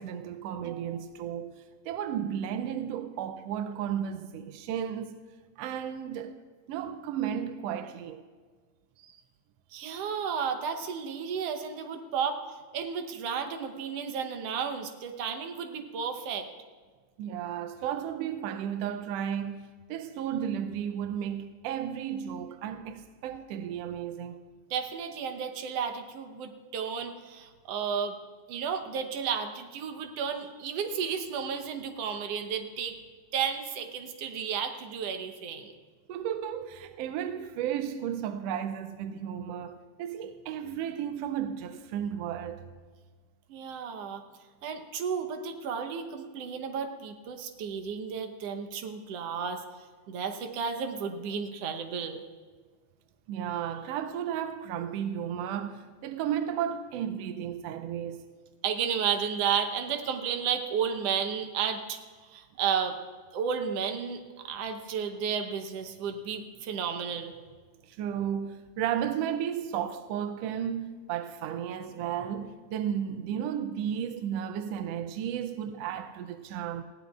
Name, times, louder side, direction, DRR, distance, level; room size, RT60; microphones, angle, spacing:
voice 1, 0.0-5.2 5.6-6.4 6.7-8.2 17.2-19.6 19.9-24.4 36.1-42.6 53.3-58.3 67.8-76.8, right 9 dB, 85° right, 1.4 m, -33 dB
voice 2, 9.7-12.4 12.7-16.5 24.7-28.2 28.5-33.0 33.3-35.7 43.5-44.2 44.6-49.6 50.1-52.2 58.6-62.0 62.3-63.0 63.3-67.3, right 7 dB, 65° right, 1.8 m, -32 dB
19.5 x 15.5 x 2.4 m
omnidirectional pair, 3.4 m